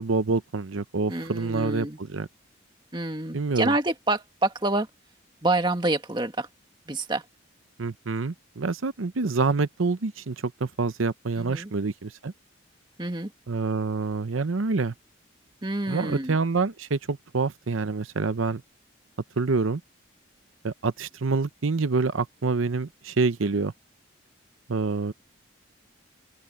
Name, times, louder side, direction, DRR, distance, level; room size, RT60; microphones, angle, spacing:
voice 1, 0.0-2.3 3.3-3.7 7.8-12.3 13.5-14.9 15.9-18.6 19.4-19.8 20.6-23.7 24.7-25.1, right 4 dB, 90° right, 0.7 m, -27 dB
voice 2, 1.1-2.0 2.9-4.9 5.4-6.5 6.9-7.2 11.4-11.7 13.0-13.3 15.6-16.4, right 2 dB, 25° right, 1.8 m, -27 dB
open air
head